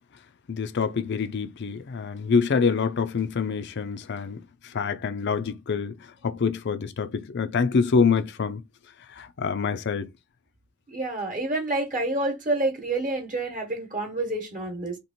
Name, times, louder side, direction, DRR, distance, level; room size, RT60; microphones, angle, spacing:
voice 1, 0.5-6.0 6.2-8.6 9.1-10.1, left 5 dB, 55° left, 0.5 m, -26 dB
voice 2, 10.9-15.0, right 2 dB, 40° right, 1.0 m, -28 dB
2.9 x 2.9 x 4.2 m
head